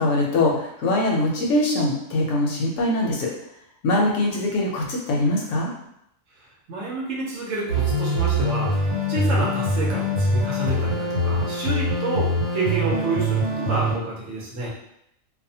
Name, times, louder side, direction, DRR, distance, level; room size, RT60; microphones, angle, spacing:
voice 1, 0.0-3.3 3.8-5.7, left 2 dB, 70° left, -1 dB, 0.9 m, -22 dB
voice 2, 6.7-8.7 9.1-14.7, right 2 dB, 70° right, -4 dB, 1.1 m, -29 dB
sound 1, 7.7-13.9, equal, 90° right, 1.3 m, -23 dB
2.6 x 2.1 x 2.7 m, 0.77 s
omnidirectional pair, 1.4 m